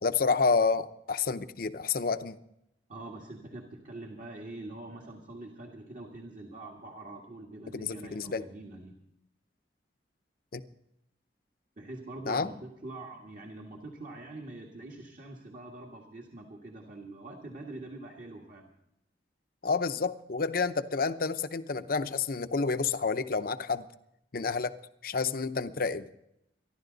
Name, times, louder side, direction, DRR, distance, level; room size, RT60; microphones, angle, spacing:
voice 1, 0.0-2.4 7.7-8.4 10.5-10.6 12.3-12.5 19.6-23.9 24.3-24.7 25.0-26.1, left 4 dB, 55° left, 11 dB, 0.7 m, -29 dB
voice 2, 2.9-9.0 11.8-18.7, right 2 dB, 45° right, 0 dB, 1.7 m, -44 dB
25.5 x 11.5 x 4.0 m, 0.82 s
head